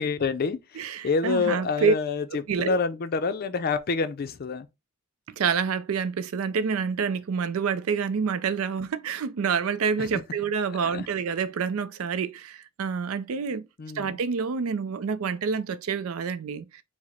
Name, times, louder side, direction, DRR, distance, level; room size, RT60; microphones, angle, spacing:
voice 1, 0.0-4.7 10.0-10.2 10.7-11.1 13.8-14.2, left 4 dB, 45° left, 0.4 m, -28 dB
voice 2, 0.8-1.9 2.5-2.7 5.4-13.7 14.0-16.8, right 5 dB, 80° right, 0.4 m, -27 dB
4.8 x 2.0 x 4.1 m
head